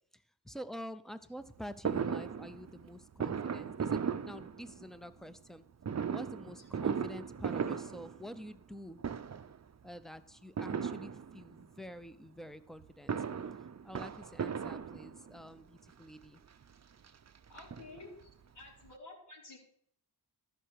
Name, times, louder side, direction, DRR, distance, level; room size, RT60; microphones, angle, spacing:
voice 1, 0.1-5.6 6.1-9.0 9.8-13.2 13.8-16.4, equal, ahead, 12 dB, 0.7 m, -48 dB
Fireworks, 1.9-5.0 5.8-8.7 9.0-9.6 10.6-11.7 12.8-15.5 16.2-16.3 16.6-16.7 17.0-18.3 18.6-18.7 18.9-19.0, right 7 dB, 40° right, 0.6 m, -37 dB
voice 2, 17.5-18.3 18.5-19.6, left 3 dB, 80° left, -5 dB, 4.4 m, -51 dB
13.5 x 6.0 x 6.4 m, 0.67 s
wide cardioid pair, 105°, 40 cm